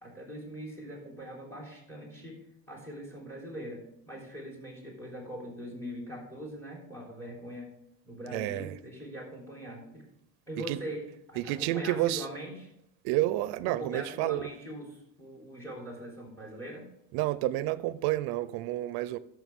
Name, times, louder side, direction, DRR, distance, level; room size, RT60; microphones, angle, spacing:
voice 1, 0.0-2.4 2.7-7.7 8.0-10.0 10.5-12.7 13.6-16.9, equal, 5° left, 3.5 m, -42 dB
voice 2, 8.3-8.8 10.6-10.8 11.3-12.3 13.0-14.5 17.1-19.2, right 15 dB, 90° right, 0.6 m, -30 dB
12.5 x 6.7 x 3.6 m
cardioid pair, 155°, 37 cm